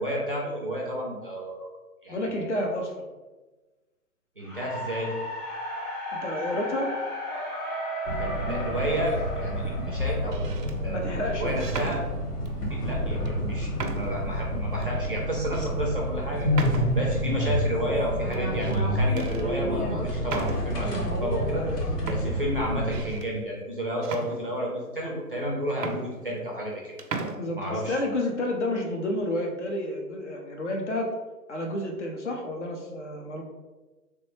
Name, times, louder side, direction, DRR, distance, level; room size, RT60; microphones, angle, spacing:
voice 1, 0.0-1.7 2.0-2.8 4.4-5.1 8.2-12.0 12.7-21.7 22.0-26.8 27.5-28.0, equal, 40° right, -3 dB, 0.4 m, -31 dB
voice 2, 2.1-3.0 6.1-6.9 10.9-11.6 21.5-21.9 27.3-31.1 31.5-33.4, left 1 dB, 50° left, 1 dB, 0.6 m, -30 dB
sound 1, 4.4-10.6, equal, 25° left, 0.9 m, -34 dB
sound 2, 8.1-23.0, equal, 80° left, 0.9 m, -29 dB
sound 3, 8.9-9.4 10.2-10.8 11.6-12.6 13.2-13.3 13.8-14.3 14.8-14.9 15.5-15.7 16.5-17.2 18.3-18.8 19.2-19.5 20.3-20.9 21.7-21.8 22.1-23.3 24.0-24.9 25.4-25.5 25.7-26.7 27.0-27.4, right 4 dB, 85° right, 0.5 m, -37 dB
3.2 x 2.1 x 3.0 m, 1.2 s
figure-of-eight pair, 145°, 46 cm